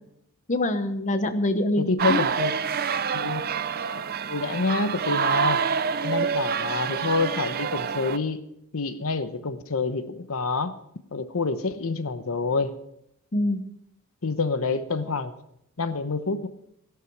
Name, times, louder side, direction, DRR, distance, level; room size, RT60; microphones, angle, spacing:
voice 1, 0.5-2.3 13.3-13.6, left 1 dB, 35° left, 9 dB, 0.9 m, -25 dB
voice 2, 1.8-2.5 3.1-3.4 4.3-5.6 6.0-8.4 8.7-10.7 11.1-12.8 14.2-15.3 15.8-16.5, left 3 dB, 65° left, 11 dB, 0.9 m, -27 dB
sound 1, 2.0-8.2, right 7 dB, 45° right, 0.6 m, -27 dB
16.5 x 11.5 x 4.7 m, 0.76 s
head